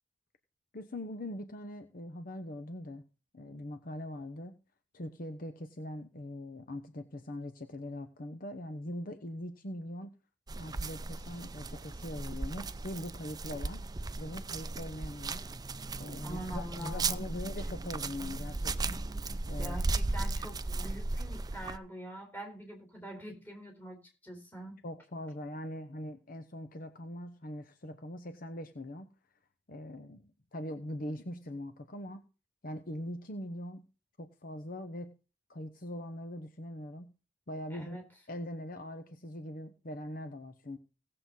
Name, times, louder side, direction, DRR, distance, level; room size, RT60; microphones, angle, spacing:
voice 1, 0.7-3.0 3.3-4.5 4.9-10.1 10.6-13.8 14.2-15.4 16.0-19.0 19.5-19.8 24.8-29.1 29.7-32.2 32.6-33.8 34.2-35.1 35.5-37.1 37.5-38.0 38.3-40.8, left 1 dB, 50° left, 8 dB, 1.0 m, -42 dB
sound 1, 10.5-21.8, right 3 dB, 20° right, 0.5 m, -36 dB
voice 2, 16.2-17.3 19.6-24.0 24.2-24.8 37.7-38.0, right 1 dB, 10° left, 2 dB, 4.0 m, -44 dB
17.5 x 7.7 x 4.0 m, 0.34 s
head